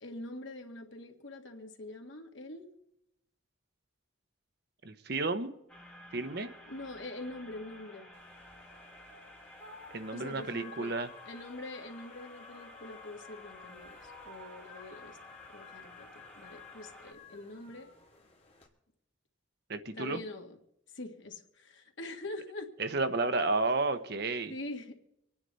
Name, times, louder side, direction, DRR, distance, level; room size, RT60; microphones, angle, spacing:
voice 1, 0.0-2.7 6.7-8.1 10.1-11.0 11.3-15.2 15.5-17.9 19.9-20.6 20.9-22.7 24.5-24.9, left 2 dB, 75° left, 4 dB, 1.8 m, -44 dB
voice 2, 4.8-5.5 6.1-6.5 9.9-11.1 19.7-20.2 22.8-24.5, right 3 dB, 55° right, 9 dB, 0.9 m, -32 dB
sound 1, 5.7-17.1, left 1 dB, 5° left, 2.2 m, -53 dB
sound 2, 8.1-18.7, left 4 dB, 30° left, 2.3 m, -54 dB
25.5 x 9.7 x 4.1 m, 0.81 s
head